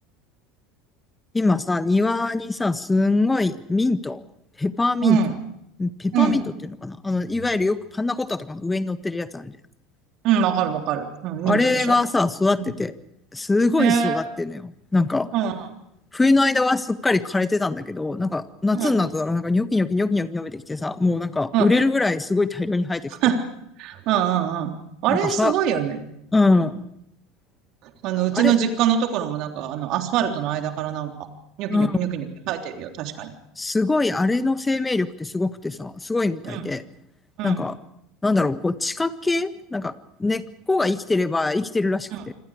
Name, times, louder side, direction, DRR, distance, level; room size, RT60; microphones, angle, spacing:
voice 1, 1.3-4.2 4.6-5.2 5.8-6.4 6.8-9.5 11.5-12.9 13.3-15.3 16.1-23.1 25.1-25.5 26.3-26.8 28.4-28.5 31.7-32.0 33.6-36.8 37.4-37.7 38.2-42.3, left 3 dB, 15° left, 12 dB, 1.5 m, -23 dB
voice 2, 5.0-5.4 6.1-6.4 10.2-12.0 12.6-12.7 13.8-14.2 15.3-15.7 18.7-19.0 21.5-21.7 23.2-23.4 23.8-24.7 25.0-26.1 26.5-26.7 27.8-31.1 31.6-33.3 36.4-36.6 37.4-37.6 42.1-42.2, right 9 dB, 55° right, 4 dB, 3.4 m, -23 dB
27.0 x 26.0 x 5.0 m, 0.77 s
figure-of-eight pair, 75°, 0 cm